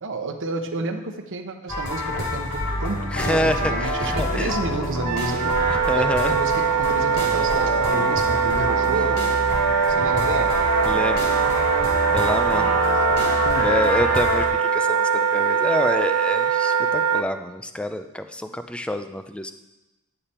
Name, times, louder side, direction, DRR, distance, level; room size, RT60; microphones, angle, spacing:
voice 1, 0.0-3.0 3.2-5.6 6.0-9.2 9.9-10.6 12.5-13.8, right 3 dB, 60° right, 5 dB, 0.9 m, -31 dB
sound 1, 1.7-14.5, left 1 dB, 80° left, 3.7 m, -26 dB
voice 2, 3.1-4.5 5.7-6.4 10.9-11.3 12.1-12.8 13.6-14.4 14.7-19.5, left 1 dB, 5° left, 8 dB, 0.4 m, -27 dB
Wind instrument woodwind instrument, 5.0-17.2, right 7 dB, 80° right, 0.4 m, -22 dB
10.5 x 6.8 x 4.3 m, 1.0 s
head